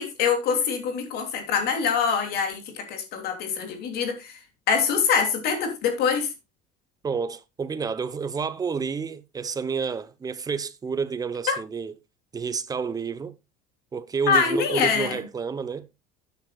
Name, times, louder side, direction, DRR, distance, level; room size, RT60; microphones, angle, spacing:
voice 1, 0.0-4.4 4.7-6.3 11.5-11.6 14.3-15.2, left 6 dB, 55° left, 3.1 m, -24 dB
voice 2, 7.0-11.9 12.3-13.4 13.9-15.9, right 5 dB, 20° right, 0.9 m, -30 dB
12.5 x 9.6 x 2.4 m
cardioid pair, 150°, 19 cm